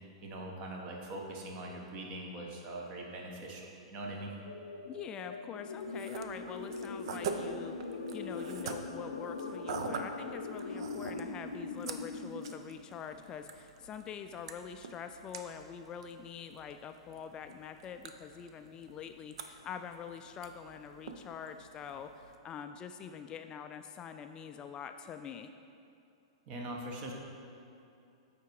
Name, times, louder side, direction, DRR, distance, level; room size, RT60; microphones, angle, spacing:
voice 1, 0.2-4.3 26.5-27.1, right 1 dB, 40° right, 0 dB, 1.3 m, -42 dB
sound 1, 4.4-12.5, left 3 dB, 90° left, 0.6 m, -41 dB
voice 2, 4.9-7.8 8.1-25.5, left 7 dB, 25° left, 8 dB, 0.3 m, -45 dB
sound 2, 5.8-22.4, right 5 dB, 65° right, 0.6 m, -46 dB
7.9 x 4.9 x 4.7 m, 2.7 s
hypercardioid pair, 120°, 3 cm